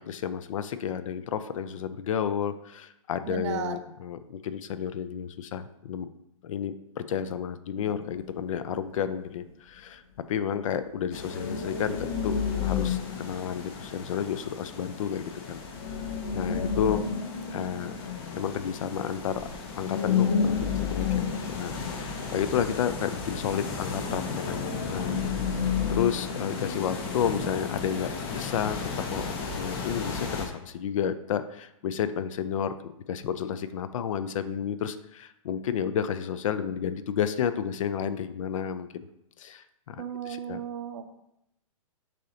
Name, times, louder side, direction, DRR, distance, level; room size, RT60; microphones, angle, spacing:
voice 1, 0.0-6.1 6.4-10.0 10.3-15.6 16.3-17.0 17.5-17.9 18.4-19.5 19.8-25.2 25.6-28.8 29.1-38.9 39.4-40.6, left 8 dB, 70° left, 12 dB, 0.4 m, -31 dB
voice 2, 3.3-3.8 40.0-41.1, right 7 dB, 60° right, 9 dB, 0.5 m, -34 dB
sound 1, 7.8-9.0 11.1-14.1 15.7-18.7 19.3-19.6 19.8-22.8 24.4-27.0 27.3-27.5, left 6 dB, 85° left, 0.7 m, -30 dB
sound 2, 11.1-30.5, left 4 dB, 45° left, 0.8 m, -37 dB
6.2 x 2.8 x 2.7 m, 0.83 s
hypercardioid pair, 130°, 18 cm